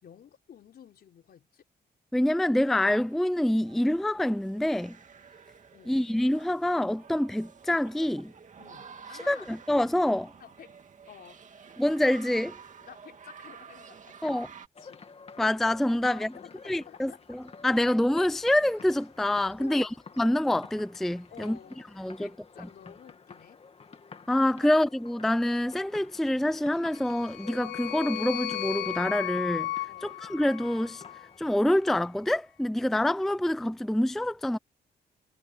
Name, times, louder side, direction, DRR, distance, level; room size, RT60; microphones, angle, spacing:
voice 1, 0.0-1.6 5.7-6.0 8.6-9.5 10.4-11.6 12.8-14.5 14.8-15.1 16.0-17.2 19.6-19.9 21.3-23.6 29.9-30.2, left 9 dB, 65° left, 3.9 m, -51 dB
voice 2, 2.1-5.0 5.9-8.3 9.3-10.3 11.8-12.5 14.2-14.5 15.4-16.3 16.7-19.9 20.2-21.6 22.0-22.3 24.3-29.7 30.0-31.0 31.4-34.6, left 1 dB, ahead, 0.4 m, -26 dB
sound 1, 2.7-14.7, right 6 dB, 45° right, 2.3 m, -51 dB
sound 2, 14.7-31.4, left 5 dB, 35° left, 2.3 m, -51 dB
sound 3, 26.9-31.3, left 14 dB, 85° left, 1.8 m, -35 dB
cardioid pair, 110°, 17 cm